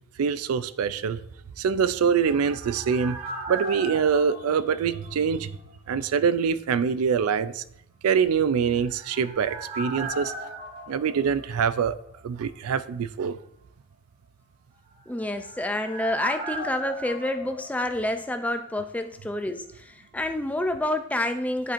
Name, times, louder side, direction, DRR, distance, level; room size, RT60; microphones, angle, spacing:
voice 1, 0.2-1.2 1.6-5.5 5.9-7.6 8.0-10.3 10.9-12.0 12.2-13.4, right 6 dB, 85° right, 15 dB, 0.4 m, -24 dB
sound 1, 1.9-5.8 6.0-6.1 8.5-12.3 12.5-12.6 14.9-18.7 19.0-19.1, right 1 dB, 25° right, 1.3 m, -38 dB
voice 2, 15.1-21.7, left 1 dB, 5° left, 7 dB, 0.3 m, -28 dB
11.0 x 4.4 x 2.5 m, 0.72 s
head